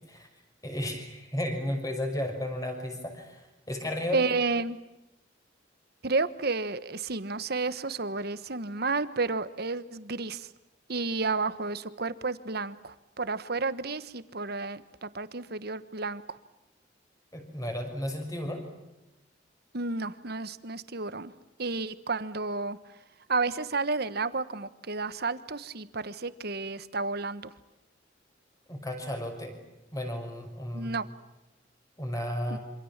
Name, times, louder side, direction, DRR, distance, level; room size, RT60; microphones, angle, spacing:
voice 1, 0.6-4.2 17.3-18.7 28.7-29.6 29.9-30.9 32.0-32.6, left 1 dB, 20° left, 5 dB, 5.9 m, -33 dB
voice 2, 4.1-4.8 6.0-10.5 10.9-16.4 19.7-21.3 21.6-22.8 23.3-27.5 30.7-31.1 32.5-32.6, right 3 dB, 55° right, 13 dB, 1.4 m, -31 dB
27.0 x 26.5 x 7.4 m, 0.96 s
head